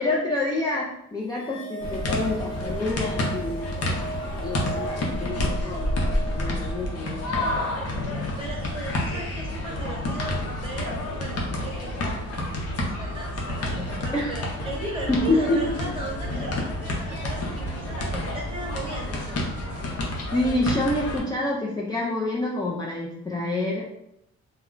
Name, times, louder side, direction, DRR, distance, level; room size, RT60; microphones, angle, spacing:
voice 1, 0.0-4.0 4.4-7.5 14.1-14.4 15.1-15.6 20.3-23.9, left 2 dB, 15° left, -4 dB, 0.4 m, -27 dB
sound 1, 1.3-7.9, right 2 dB, 90° left, 0.9 m, -38 dB
sound 2, 1.8-21.2, left 1 dB, 55° left, 0.7 m, -29 dB
sound 3, 2.2-18.7, right 2 dB, 70° right, 0.7 m, -45 dB
voice 2, 8.4-12.1 13.0-19.4, right 1 dB, 20° right, -2 dB, 1.0 m, -37 dB
2.1 x 2.1 x 3.7 m, 0.79 s
cardioid pair, 90°, 30 cm